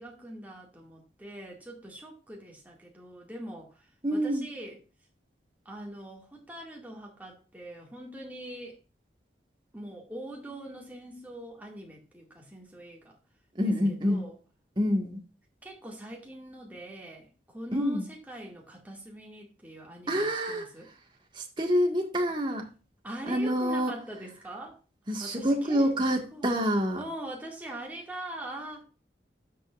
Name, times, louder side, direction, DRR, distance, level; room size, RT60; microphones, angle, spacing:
voice 1, 0.0-4.8 5.7-8.8 9.7-13.2 13.6-14.4 15.6-20.9 23.0-24.8 25.2-25.9 26.3-26.5 27.0-28.8, right 1 dB, 10° right, 2.1 m, -43 dB
voice 2, 4.0-4.5 13.6-14.3 14.8-15.2 17.7-18.0 20.1-20.7 21.3-22.7 23.3-23.9 25.1-27.0, equal, 25° right, 1.7 m, -27 dB
13.0 x 5.4 x 2.5 m
head